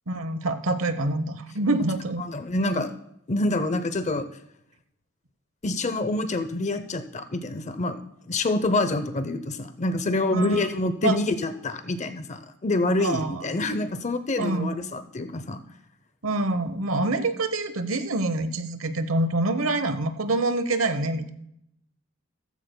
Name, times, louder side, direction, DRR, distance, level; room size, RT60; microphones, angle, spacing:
voice 1, 0.1-2.2 10.3-10.7 11.0-11.2 13.0-13.5 14.4-14.7 16.2-21.3, right 2 dB, 80° right, 11 dB, 1.0 m, -26 dB
voice 2, 2.2-2.9 3.3-4.3 5.6-8.0 8.3-15.6, left 2 dB, 35° left, 10 dB, 0.6 m, -26 dB
14.5 x 14.5 x 2.2 m, 0.76 s
head